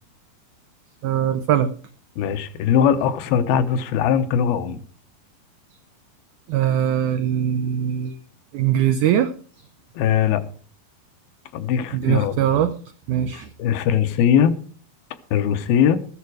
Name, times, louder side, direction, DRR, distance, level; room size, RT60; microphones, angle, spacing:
voice 1, 1.0-1.7 6.5-8.2 8.5-9.3 11.9-12.8 13.1-13.5, right 10 dB, 90° right, 1.7 m, -21 dB
voice 2, 2.2-4.8 10.0-10.4 11.5-12.4 13.3-14.6 15.3-16.0, left 8 dB, 75° left, 2.7 m, -20 dB
14.0 x 11.5 x 4.8 m
omnidirectional pair, 4.5 m